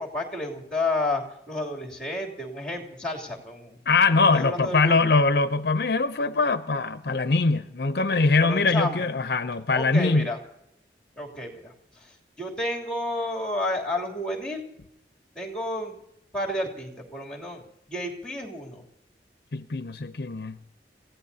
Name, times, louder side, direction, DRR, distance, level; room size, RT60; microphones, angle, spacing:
voice 1, 0.0-3.8 4.3-5.2 8.4-9.1 9.7-10.4 11.2-14.7 15.3-16.0 16.3-18.8, left 1 dB, 5° left, 3.0 m, -31 dB
voice 2, 3.9-10.3 19.5-20.6, left 3 dB, 60° left, 0.6 m, -22 dB
28.5 x 16.0 x 2.8 m
head